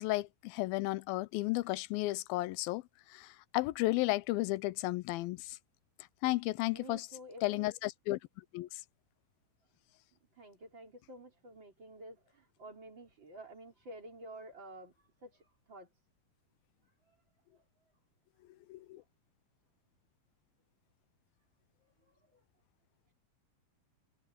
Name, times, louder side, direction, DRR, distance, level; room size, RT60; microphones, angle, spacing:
voice 1, 0.0-2.8 3.1-5.6 6.2-7.1 7.4-8.2 8.5-8.8 18.7-19.0, left 19 dB, 90° left, 2.5 m, -33 dB
voice 2, 6.7-7.7 10.4-14.9 15.2-15.9 22.3-22.4, right 1 dB, 30° right, 4.3 m, -50 dB
omnidirectional pair, 4.2 m